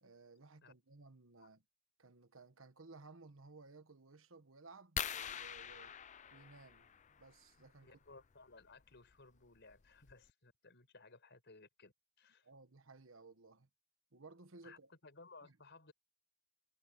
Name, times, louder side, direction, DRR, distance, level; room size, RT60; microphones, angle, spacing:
voice 1, 0.0-1.6 2.0-6.0 6.3-8.0 12.4-13.7 14.1-14.9 15.4-15.6, right 3 dB, 70° right, 1.4 m, -58 dB
sound 1, 5.0-7.3 8.9-9.1 9.7-9.8 10.1-10.3, left 8 dB, 35° left, 0.5 m, -44 dB
voice 2, 7.8-12.5 14.6-15.9, left 3 dB, 60° left, 5.0 m, -60 dB
head